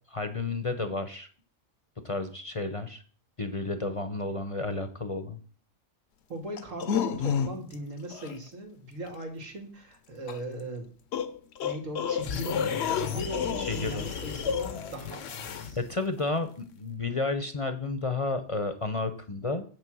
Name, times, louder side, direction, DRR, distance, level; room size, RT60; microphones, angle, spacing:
voice 1, 0.1-1.3 2.0-3.0 3.4-5.4 13.6-14.1 15.8-19.6, left 3 dB, 30° left, 9 dB, 0.7 m, -31 dB
voice 2, 6.3-10.9 11.6-15.8, right 1 dB, 85° right, 2 dB, 2.4 m, -39 dB
sound 1, 6.6-7.7 8.1-8.3 10.3-10.4 11.1-14.1 14.4-14.9, left 7 dB, 65° left, 0.9 m, -30 dB
sound 2, 12.2-16.1, left 8 dB, 80° left, 1.2 m, -37 dB
8.1 x 6.1 x 6.2 m, 0.43 s
omnidirectional pair, 1.3 m